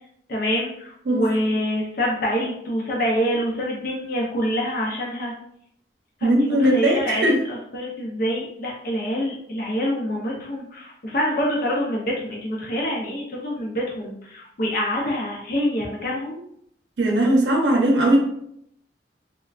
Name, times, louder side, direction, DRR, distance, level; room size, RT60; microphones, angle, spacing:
voice 1, 0.3-5.3 6.2-16.4, equal, 55° left, -3 dB, 0.6 m, -26 dB
voice 2, 6.2-7.4 17.0-18.2, right 1 dB, 90° right, 0 dB, 0.6 m, -19 dB
3.3 x 2.2 x 2.3 m, 0.69 s
head